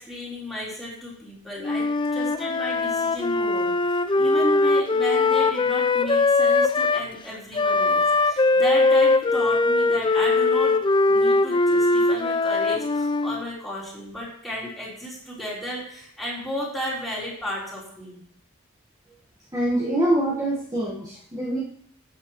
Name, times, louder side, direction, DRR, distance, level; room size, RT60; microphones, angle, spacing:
voice 1, 0.0-10.8 11.1-18.2, left 1 dB, ahead, -7 dB, 3.7 m, -33 dB
Wind instrument woodwind instrument, 1.6-7.1 7.5-13.4, left 3 dB, 25° left, 0.4 m, -21 dB
voice 2, 19.5-21.6, right 1 dB, 15° right, -6 dB, 1.4 m, -24 dB
12.5 x 8.3 x 3.0 m, 0.65 s
head